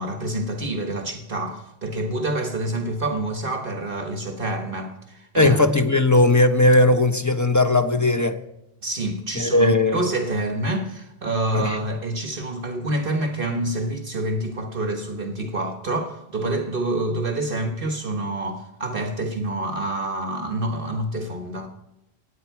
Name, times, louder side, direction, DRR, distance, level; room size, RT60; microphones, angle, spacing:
voice 1, 0.0-5.6 8.8-21.7, right 1 dB, 60° right, 1.4 m, -27 dB
voice 2, 5.4-8.4 9.4-10.1 11.5-11.8, left 2 dB, 20° left, 1.0 m, -18 dB
27.0 x 9.1 x 4.6 m
omnidirectional pair, 1.1 m